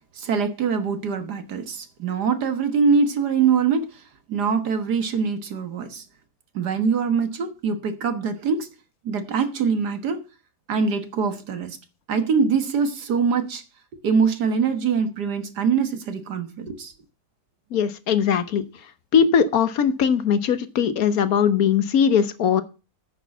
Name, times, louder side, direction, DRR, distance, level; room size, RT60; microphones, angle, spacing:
voice 1, 0.2-4.0 4.3-6.0 6.5-8.7 9.0-10.2 10.7-11.8 12.1-13.6 14.0-16.9, right 5 dB, 80° right, 1.9 m, -23 dB
voice 2, 17.7-18.6 19.1-22.6, left 7 dB, 65° left, 1.3 m, -20 dB
9.3 x 6.5 x 7.0 m
omnidirectional pair, 1.7 m